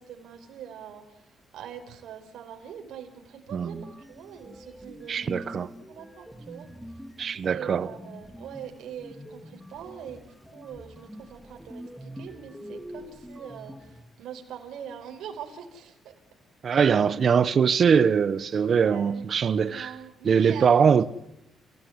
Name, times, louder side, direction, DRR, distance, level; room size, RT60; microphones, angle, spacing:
voice 1, 0.0-5.6 5.9-6.7 7.5-10.2 10.5-16.1 18.8-19.3 19.6-21.1, right 8 dB, 80° right, 5.2 m, -43 dB
sound 1, 3.7-14.0, equal, ahead, 2.5 m, -45 dB
voice 2, 5.1-5.7 7.2-7.9 16.6-19.9 20.2-21.0, right 6 dB, 45° right, 1.0 m, -22 dB
29.5 x 17.5 x 9.7 m
cardioid pair, 140°, 0 cm